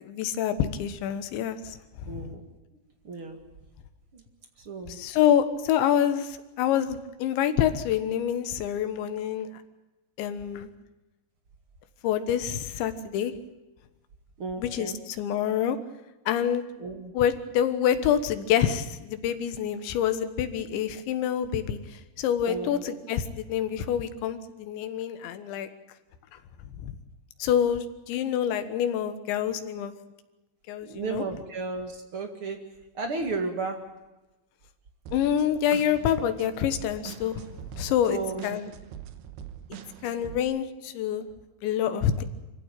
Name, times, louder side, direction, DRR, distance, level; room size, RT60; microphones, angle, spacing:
voice 1, 0.0-2.3 4.9-9.5 10.2-10.7 12.0-13.3 14.6-15.8 16.3-16.6 17.2-25.7 26.8-26.9 27.4-29.9 30.7-31.2 35.1-37.4 37.8-38.7 40.0-41.3 41.6-42.2, left 9 dB, 80° left, 10 dB, 3.6 m, -27 dB
voice 2, 2.1-2.5 3.0-3.4 4.1-4.2 4.6-5.0 14.4-15.0 16.8-17.1 22.5-23.1 30.8-32.6 32.9-33.8 38.1-38.6 40.4-40.5, right 4 dB, 40° right, 5 dB, 2.0 m, -34 dB
sound 1, 35.1-40.4, right 10 dB, 70° right, 2.9 m, -44 dB
25.5 x 16.0 x 9.0 m, 1.1 s
omnidirectional pair, 5.2 m